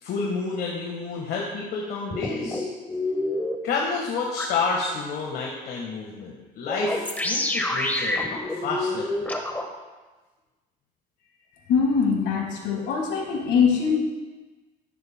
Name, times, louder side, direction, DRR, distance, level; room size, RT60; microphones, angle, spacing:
voice 1, 0.0-2.6 3.6-9.1 9.3-9.4, left 4 dB, 70° left, -1 dB, 1.5 m, -29 dB
sound 1, 2.1-3.5 4.4-4.5 6.7-9.6, left 2 dB, 10° left, 1.1 m, -27 dB
voice 2, 11.7-14.0, left 6 dB, 85° left, 1 dB, 1.8 m, -22 dB
11.5 x 10.0 x 2.2 m, 1.2 s
cardioid pair, 110°, 17 cm